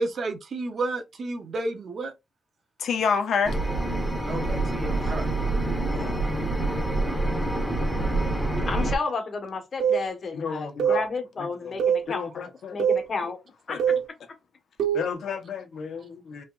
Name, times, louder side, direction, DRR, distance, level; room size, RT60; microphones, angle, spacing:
voice 1, 0.0-2.1 4.3-5.3, right 2 dB, 50° right, 0.9 m, -31 dB
voice 2, 2.8-3.6 5.9-6.1 10.3-11.1 11.6-11.8 12.1-12.8 13.7-13.9 14.9-16.4, left 6 dB, 65° left, 1.1 m, -30 dB
sound 1, 3.4-8.9, right 2 dB, ahead, 1.4 m, -26 dB
voice 3, 8.7-13.4 13.7-13.9, left 4 dB, 45° left, 1.4 m, -32 dB
sound 2, 9.8-10.0 10.8-11.0 11.8-12.0 12.8-13.0 13.8-14.0 14.8-15.1, right 8 dB, 85° right, 1.3 m, -23 dB
5.5 x 3.4 x 2.5 m
cardioid pair, 125°, 0 cm